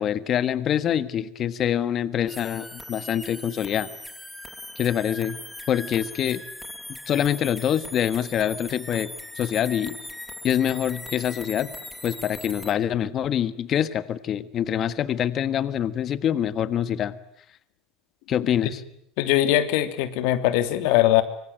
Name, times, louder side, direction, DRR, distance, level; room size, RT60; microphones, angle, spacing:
voice 1, 0.0-3.9 4.8-5.4 5.7-6.4 7.1-9.1 9.3-10.0 10.4-11.7 12.0-17.1 18.3-18.8, left 10 dB, 35° left, 14 dB, 1.4 m, -25 dB
sound 1, 2.3-12.7, left 1 dB, 5° left, 2.2 m, -40 dB
voice 2, 19.2-21.2, left 13 dB, 75° left, 10 dB, 3.0 m, -21 dB
25.5 x 25.5 x 9.1 m, 0.71 s
cardioid pair, 160°, 0 cm